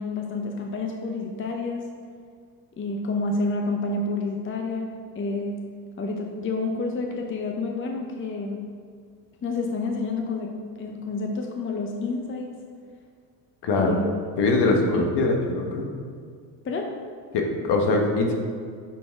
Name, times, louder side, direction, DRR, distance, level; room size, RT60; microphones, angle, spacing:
voice 1, 0.0-1.8 2.8-5.6 6.0-8.6 9.4-12.6 13.8-14.1 14.9-15.1 16.6-16.9, left 3 dB, 25° left, 2 dB, 0.7 m, -29 dB
voice 2, 13.6-14.0 14.4-15.9 17.3-18.3, left 2 dB, 55° left, 2 dB, 1.2 m, -22 dB
8.2 x 4.1 x 3.5 m, 2.1 s
hypercardioid pair, 65°, 50 cm